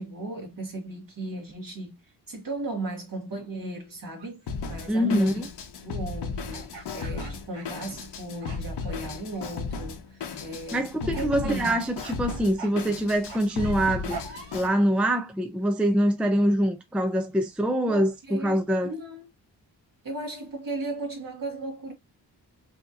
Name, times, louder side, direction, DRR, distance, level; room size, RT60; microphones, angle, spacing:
voice 1, 0.0-2.0 2.3-4.4 4.7-5.5 5.8-11.8 17.9-19.3 20.0-21.9, right 2 dB, 50° right, 1.8 m, -36 dB
sound 1, 4.2-4.4 6.5-8.2 8.4-8.9 9.3-9.8 10.2-10.5 11.1-11.4 11.9-12.2 12.6-14.8, right 5 dB, 75° right, 2.0 m, -43 dB
Drum kit, 4.5-14.7, left 4 dB, 70° left, 1.0 m, -35 dB
voice 2, 4.9-5.5 10.7-14.2 14.5-18.9, equal, 5° right, 0.5 m, -24 dB
4.7 x 2.9 x 2.4 m
cardioid pair, 90°, 43 cm